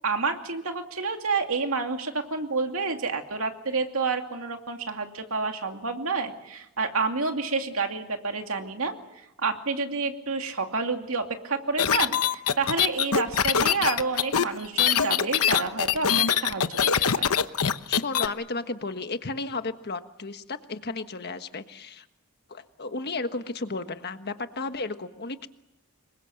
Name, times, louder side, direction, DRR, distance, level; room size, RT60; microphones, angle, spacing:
voice 1, 0.0-8.9 9.4-16.8 17.2-17.4, right 4 dB, 65° right, 4 dB, 2.6 m, -29 dB
sound 1, 11.8-18.3, left 8 dB, 80° left, 1.0 m, -23 dB
voice 2, 17.9-22.0 22.5-25.5, left 3 dB, 45° left, 9 dB, 1.4 m, -33 dB
26.5 x 23.0 x 7.8 m, 0.87 s
head